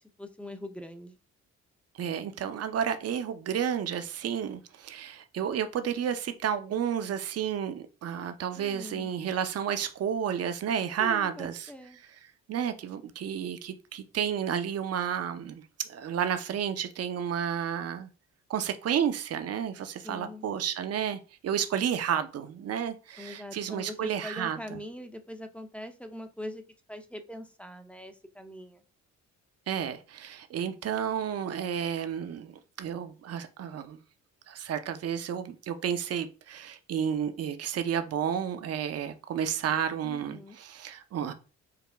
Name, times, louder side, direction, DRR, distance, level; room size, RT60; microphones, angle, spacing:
voice 1, 0.2-1.2 8.6-9.1 11.0-12.0 20.0-20.5 23.2-26.6 26.9-28.8 40.0-40.6, left 1 dB, 5° left, 7 dB, 0.5 m, -42 dB
voice 2, 2.0-11.7 12.5-15.6 15.9-18.1 18.5-24.8 29.7-34.0 34.5-41.3, right 8 dB, 55° right, 9 dB, 0.6 m, -31 dB
4.8 x 2.3 x 3.4 m, 0.34 s
cardioid pair, 90°, 30 cm